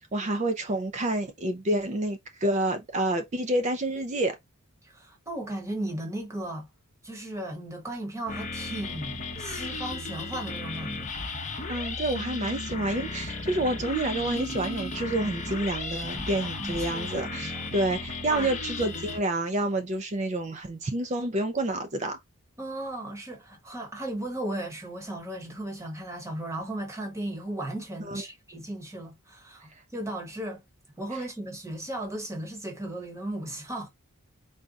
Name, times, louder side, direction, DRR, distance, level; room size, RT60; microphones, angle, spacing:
voice 1, 0.1-4.4 11.7-22.2 28.1-28.2, right 1 dB, 30° right, 0.4 m, -28 dB
voice 2, 4.8-6.7 7.0-11.1 16.4-17.7 18.3-18.5 18.8-19.0 22.6-30.6 31.0-33.9, right 1 dB, 15° right, 1.0 m, -36 dB
sound 1, 8.3-19.2, left 3 dB, 35° left, 0.7 m, -35 dB
4.0 x 2.2 x 3.6 m
head